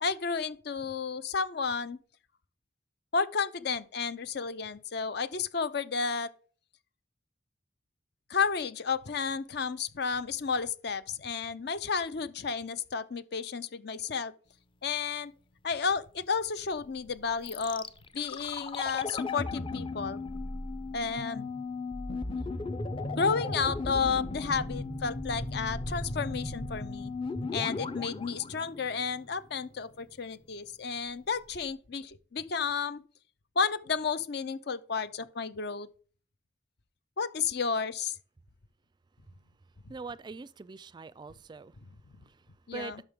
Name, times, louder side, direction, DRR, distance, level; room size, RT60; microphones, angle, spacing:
voice 1, 0.0-2.0 3.1-6.3 8.3-14.3 14.8-15.3 15.6-17.9 18.1-20.2 20.9-21.5 23.2-27.1 27.5-33.0 33.6-35.9 37.2-38.2 42.7-43.0, left 5 dB, 65° left, 0.7 m, -32 dB
sound 1, 17.5-29.5 29.7-29.8, left 3 dB, 30° left, 0.6 m, -36 dB
voice 2, 39.9-41.7 42.7-42.9, right 4 dB, 25° right, 0.3 m, -42 dB
11.5 x 6.3 x 3.6 m
head